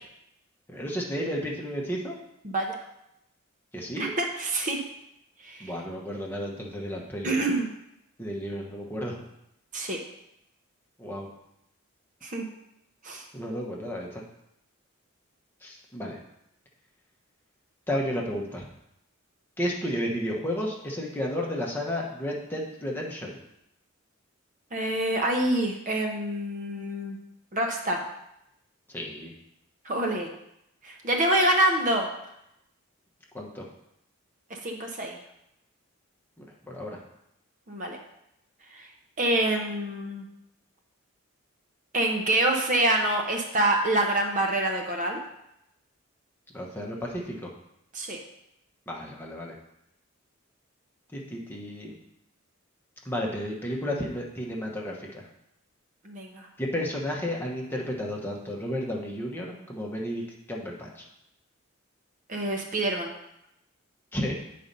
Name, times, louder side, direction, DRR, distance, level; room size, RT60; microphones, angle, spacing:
voice 1, 0.7-2.2 3.7-4.1 5.6-7.3 8.2-9.2 11.0-11.3 13.3-14.2 15.6-16.2 17.9-18.7 19.6-23.4 28.9-29.3 33.3-33.6 36.4-37.0 46.5-47.5 48.9-49.5 51.1-51.9 53.0-55.2 56.6-60.2 60.5-61.1 64.1-64.4, equal, 10° left, -2 dB, 1.0 m, -32 dB
voice 2, 2.4-2.8 3.9-4.8 5.4-5.7 7.2-7.7 9.7-10.0 12.2-12.5 13.0-13.2 24.7-27.2 27.5-28.1 29.8-30.3 30.8-32.1 34.5-35.2 37.7-38.0 38.7-38.9 39.2-40.3 41.9-45.2 47.9-48.2 56.0-56.5 62.3-63.1, right 1 dB, 35° right, 2 dB, 0.9 m, -26 dB
8.7 x 4.2 x 5.3 m, 0.81 s
head